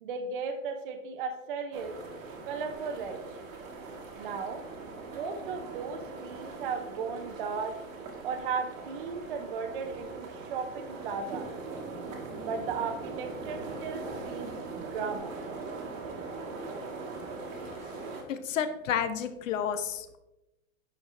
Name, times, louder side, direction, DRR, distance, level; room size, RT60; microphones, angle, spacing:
voice 1, 0.0-2.0 2.4-3.2 4.2-4.6 5.1-7.8 8.2-11.5 12.4-15.4, right 5 dB, 40° right, 5 dB, 0.6 m, -36 dB
sound 1, 1.7-18.2, right 3 dB, 65° right, 2.1 m, -41 dB
voice 2, 18.3-20.2, left 8 dB, 65° left, 11 dB, 0.9 m, -31 dB
10.5 x 4.5 x 3.2 m, 0.96 s
hypercardioid pair, 165°, 42 cm